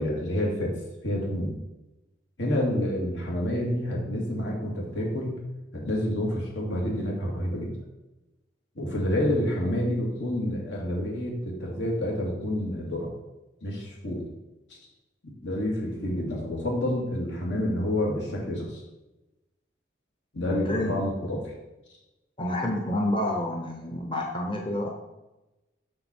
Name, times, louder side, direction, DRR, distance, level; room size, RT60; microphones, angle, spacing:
voice 1, 0.0-1.6 2.4-5.4 5.7-7.7 8.8-13.1 13.6-14.3 15.4-18.8 20.3-21.5, left 1 dB, 80° left, -2 dB, 2.5 m, -28 dB
voice 2, 20.5-20.9 22.4-24.9, left 1 dB, 30° left, 0 dB, 0.8 m, -29 dB
7.8 x 6.4 x 4.4 m, 1.0 s
head